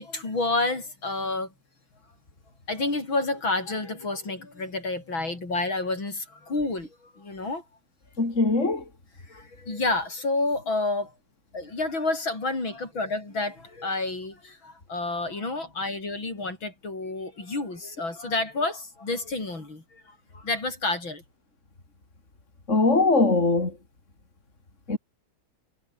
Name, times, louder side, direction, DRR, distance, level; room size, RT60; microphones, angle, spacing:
voice 1, 0.0-1.5 2.7-7.6 9.2-11.1 11.5-21.2, left 2 dB, 65° left, 7.1 m, -29 dB
voice 2, 8.2-8.8 22.7-23.7 24.9-25.0, left 3 dB, 35° left, 4.5 m, -21 dB
omnidirectional pair, 2.3 m